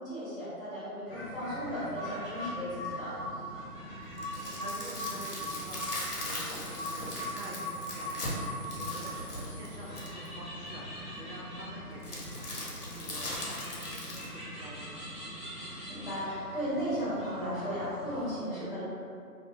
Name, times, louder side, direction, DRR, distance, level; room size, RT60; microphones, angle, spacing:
voice 1, 0.0-3.1 15.6-18.8, equal, 45° right, -13 dB, 1.2 m, -35 dB
South Africa - St. Lucia Forest & Bird Ambience, 1.0-18.3, equal, 35° left, 0.7 m, -41 dB
sound 1, 4.0-10.3 12.0-14.3, left 1 dB, 70° left, 0.8 m, -39 dB
voice 2, 4.0-12.5 12.9-15.0, right 1 dB, 90° right, -6 dB, 0.8 m, -47 dB
2.3 x 2.2 x 2.5 m, 2.3 s
figure-of-eight pair, 180°, 47 cm